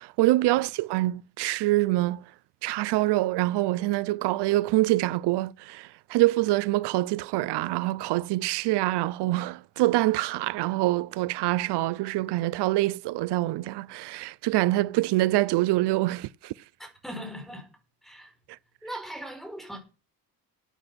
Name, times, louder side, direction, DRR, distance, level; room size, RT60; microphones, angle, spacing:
voice 1, 0.0-2.2 2.6-16.5, right 18 dB, 90° right, 0.7 m, -25 dB
voice 2, 16.8-17.7 18.0-18.3 18.8-19.8, equal, ahead, 4.7 m, -39 dB
14.0 x 8.8 x 5.9 m
cardioid pair, 180°, 39 cm